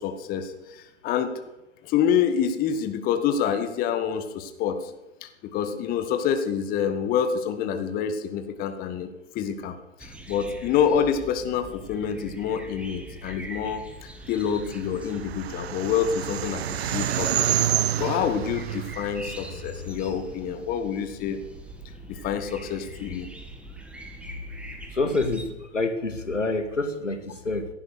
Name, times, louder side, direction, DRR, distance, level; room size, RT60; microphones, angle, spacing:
voice 1, 0.0-1.4 1.8-4.9 5.2-9.7 10.0-17.4 18.0-21.4 22.1-23.3, left 8 dB, 25° left, 8 dB, 1.5 m, -27 dB
sound 1, 10.0-25.5, right 1 dB, 5° right, 1.7 m, -43 dB
sound 2, 14.7-20.1, right 11 dB, 60° right, 0.7 m, -28 dB
voice 2, 24.9-27.7, left 2 dB, 90° left, 7 dB, 2.3 m, -27 dB
16.5 x 11.5 x 6.5 m, 1.0 s
figure-of-eight pair, 115°, 36 cm